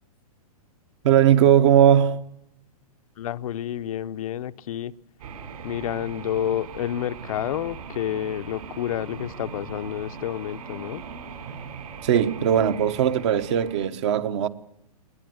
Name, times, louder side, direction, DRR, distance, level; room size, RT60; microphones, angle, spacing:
voice 1, 1.0-2.2 12.0-14.5, right 10 dB, 45° right, 1.3 m, -19 dB
voice 2, 3.2-4.9 5.6-11.0, left 11 dB, 60° left, 0.7 m, -29 dB
sound 1, 5.2-13.9, right 5 dB, 70° right, 5.2 m, -40 dB
21.0 x 19.5 x 7.8 m
hypercardioid pair, 155°, 20 cm